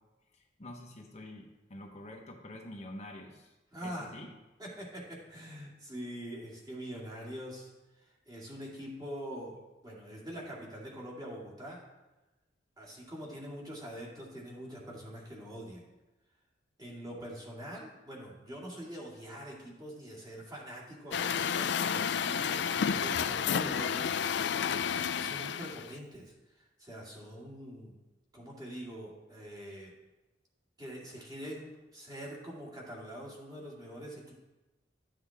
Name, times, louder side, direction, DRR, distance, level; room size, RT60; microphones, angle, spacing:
voice 1, 0.3-3.5 3.8-4.3, left 1 dB, 40° left, 1 dB, 1.0 m, -47 dB
voice 2, 3.7-4.2 4.6-11.8 12.8-15.9 16.8-28.0 28.3-29.9 30.8-34.3, equal, 20° right, -4 dB, 2.3 m, -44 dB
Truck, 21.1-25.9, left 7 dB, 70° left, 0.4 m, -31 dB
12.5 x 7.5 x 3.5 m, 1.1 s
head